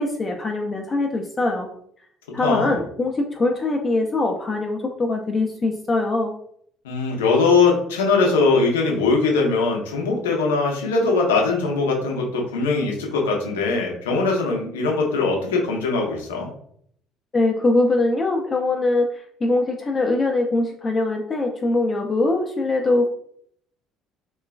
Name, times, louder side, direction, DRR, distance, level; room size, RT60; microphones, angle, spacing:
voice 1, 0.0-1.7 2.3-6.3 17.3-23.1, left 2 dB, 35° left, 2 dB, 0.4 m, -22 dB
voice 2, 2.4-2.7 6.8-16.5, left 4 dB, 80° left, 0 dB, 0.6 m, -21 dB
3.1 x 2.2 x 2.3 m, 0.65 s
hypercardioid pair, 55°, 0 cm